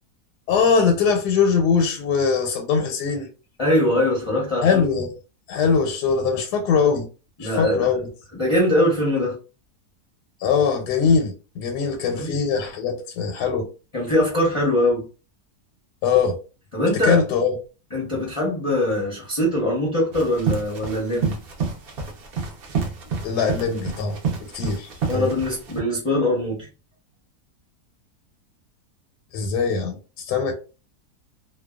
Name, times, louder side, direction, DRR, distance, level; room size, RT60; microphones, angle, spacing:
voice 1, 0.5-3.3 4.6-5.1 5.5-7.1 7.4-8.0 10.4-13.7 16.0-16.4 17.0-17.5 23.2-24.2 24.5-25.3 29.3-30.5, left 6 dB, 90° left, 1.2 m, -21 dB
voice 2, 3.6-4.9 7.4-7.9 8.3-9.4 12.1-12.3 13.9-15.0 16.7-17.2 17.9-21.4 25.1-26.7, left 1 dB, 40° left, 0.4 m, -22 dB
sound 1, 20.1-25.8, right 5 dB, 70° right, 0.5 m, -29 dB
2.6 x 2.1 x 2.2 m
omnidirectional pair, 1.7 m